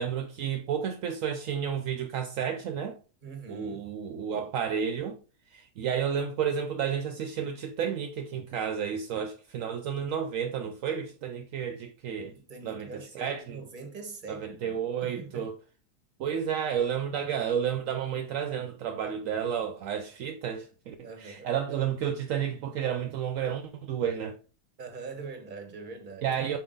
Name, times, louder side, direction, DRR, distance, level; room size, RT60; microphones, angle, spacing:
voice 1, 0.0-3.0 3.5-5.2 5.5-12.4 12.6-13.6 14.3-15.5 16.2-24.4 26.2-26.6, right 8 dB, 70° right, 0.9 m, -31 dB
voice 2, 3.2-3.8 12.3-15.5 21.0-21.6 24.8-26.3, right 4 dB, 35° right, 1.3 m, -43 dB
5.7 x 4.5 x 3.8 m
omnidirectional pair, 1.5 m